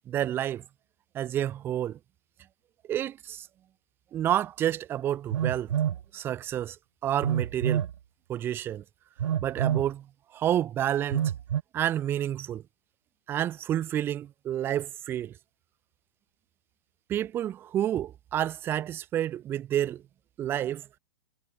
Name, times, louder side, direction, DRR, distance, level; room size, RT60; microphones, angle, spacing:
voice 1, 0.1-0.6 1.1-2.0 2.9-3.5 4.1-5.7 6.1-6.8 7.0-7.8 8.3-8.8 9.4-10.1 10.3-11.3 11.7-12.6 13.3-15.3 17.1-20.0 20.4-20.8, right 11 dB, 15° right, 0.9 m, -29 dB
Telephone, 5.3-6.0 7.2-7.9 9.2-9.9 11.1-11.6, right 10 dB, 75° right, 1.7 m, -27 dB
hypercardioid pair, 170°, 16 cm